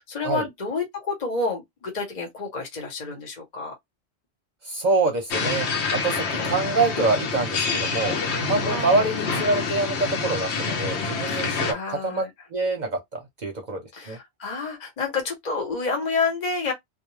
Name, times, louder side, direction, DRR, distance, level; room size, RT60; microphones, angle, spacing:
voice 1, 0.0-3.7 8.6-9.1 11.3-12.3 13.9-16.7, left 4 dB, 45° left, 1.1 m, -29 dB
voice 2, 4.6-8.2 8.5-12.2 12.5-13.8 14.1-14.2, right 3 dB, 50° right, 0.7 m, -25 dB
sound 1, 5.3-11.7, left 4 dB, 85° left, 1.0 m, -27 dB
2.3 x 2.3 x 3.0 m
omnidirectional pair, 1.1 m